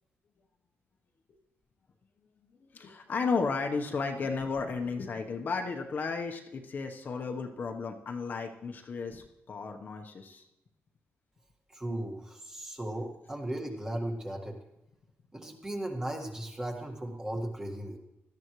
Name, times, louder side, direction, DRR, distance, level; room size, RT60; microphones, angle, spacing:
voice 1, 2.7-10.4, left 4 dB, 40° left, 3 dB, 1.1 m, -34 dB
voice 2, 11.7-14.6 15.3-18.0, right 1 dB, 15° right, 2 dB, 1.8 m, -36 dB
17.5 x 13.0 x 3.2 m, 0.91 s
wide cardioid pair, 160°, 5 cm